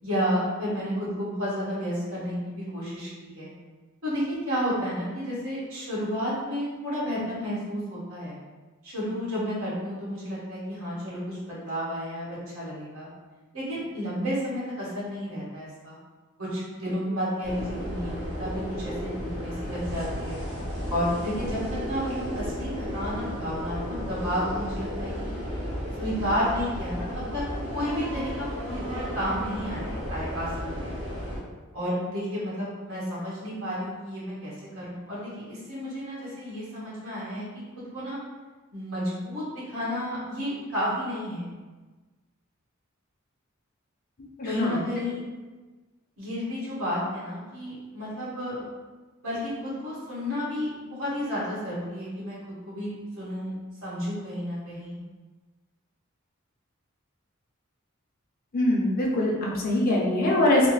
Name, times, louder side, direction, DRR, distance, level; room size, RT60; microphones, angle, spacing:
voice 1, 0.0-3.5 4.0-8.4 8.8-13.1 13.5-16.0 16.4-20.4 20.9-25.3 26.0-27.1 27.3-27.4 27.7-30.5 30.8-31.0 31.7-37.5 37.8-38.2 38.7-41.5 44.4-45.3 46.2-48.6 49.2-52.4 52.7-53.5 53.8-55.0, equal, 90° right, -8 dB, 1.4 m, -31 dB
sound 1, 17.4-31.4, equal, 60° right, 1.0 m, -33 dB
voice 2, 44.4-44.8 58.5-60.7, left 1 dB, 45° left, -3 dB, 0.6 m, -23 dB
3.3 x 2.1 x 3.1 m, 1.3 s
head